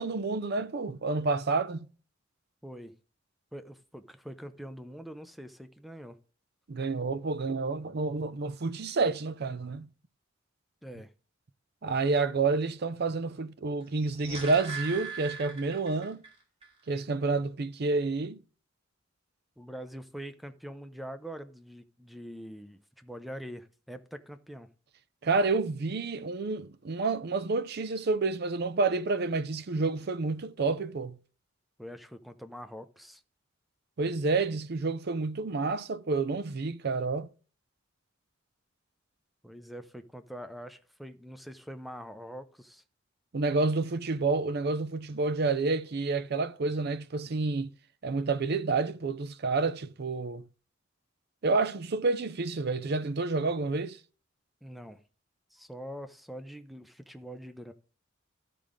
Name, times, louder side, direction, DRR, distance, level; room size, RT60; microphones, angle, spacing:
voice 1, 0.0-1.9 6.7-9.9 11.8-16.2 16.9-18.4 25.2-31.2 34.0-37.3 43.3-47.7 48.0-50.4 51.4-54.0, right 3 dB, 55° right, 0.5 m, -29 dB
voice 2, 2.6-2.9 3.5-6.2 10.8-11.1 19.6-24.7 31.8-33.2 39.4-42.8 54.6-55.0 55.5-57.7, equal, ahead, 0.6 m, -44 dB
sound 1, 13.9-16.3 16.6-16.7, right 4 dB, 30° right, 2.4 m, -40 dB
13.0 x 5.1 x 3.6 m
head